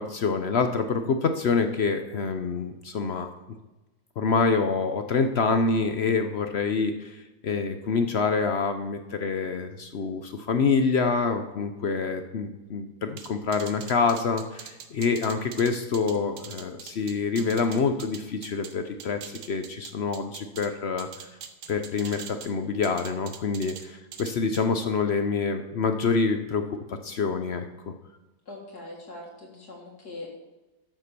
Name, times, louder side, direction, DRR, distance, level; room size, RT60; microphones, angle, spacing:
voice 1, 0.0-3.3 4.2-21.1 21.7-27.9, left 4 dB, 55° left, 7 dB, 0.7 m, -26 dB
sound 1, 13.2-18.7 19.0-20.7 21.0-22.5 22.8-23.8 24.1-24.6, right 8 dB, 65° right, 1.3 m, -42 dB
voice 2, 28.5-30.5, left 2 dB, 75° left, -2 dB, 2.4 m, -42 dB
12.0 x 5.9 x 6.7 m, 1.1 s
omnidirectional pair, 1.7 m